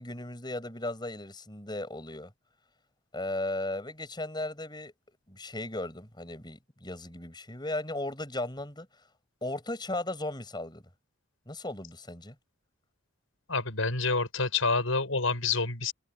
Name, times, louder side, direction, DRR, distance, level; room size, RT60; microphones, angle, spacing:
voice 1, 0.0-2.3 3.1-4.9 5.3-8.9 9.4-10.8 11.5-12.4, left 2 dB, 20° left, 7.3 m, -36 dB
voice 2, 13.5-15.9, left 4 dB, 90° left, 6.3 m, -28 dB
head